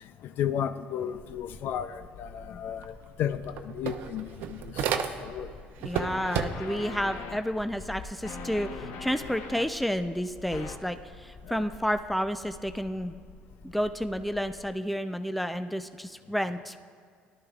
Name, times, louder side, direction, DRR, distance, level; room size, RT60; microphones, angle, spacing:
voice 1, 0.4-5.5, left 9 dB, 65° left, 12 dB, 0.5 m, -33 dB
sound 1, 1.1-14.7, left 3 dB, 25° left, 0.9 m, -49 dB
sound 2, 2.8-2.9 3.2-5.5 5.8-6.9, right 7 dB, 70° right, 0.7 m, -32 dB
voice 2, 5.8-13.2 13.6-16.9, equal, ahead, 9 dB, 0.5 m, -31 dB
sound 3, 5.9-7.4 8.2-9.7 10.5-10.8, left 5 dB, 80° left, 0.9 m, -40 dB
17.5 x 12.0 x 2.4 m, 2.1 s
cardioid pair, 100°, 4 cm